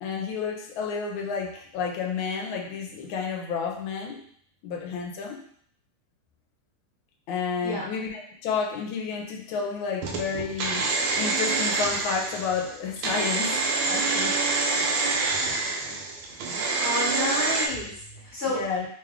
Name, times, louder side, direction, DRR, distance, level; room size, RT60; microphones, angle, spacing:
voice 1, 0.0-4.2 4.6-5.4 7.3-13.6 13.9-14.4 15.9-16.0 18.5-18.8, left 5 dB, 75° left, 1 dB, 1.3 m, -31 dB
sound 1, 10.0-17.7, right 3 dB, 75° right, 1.2 m, -26 dB
voice 2, 16.3-18.7, left 1 dB, 45° left, -9 dB, 0.7 m, -31 dB
3.5 x 2.3 x 3.4 m, 0.63 s
omnidirectional pair, 2.4 m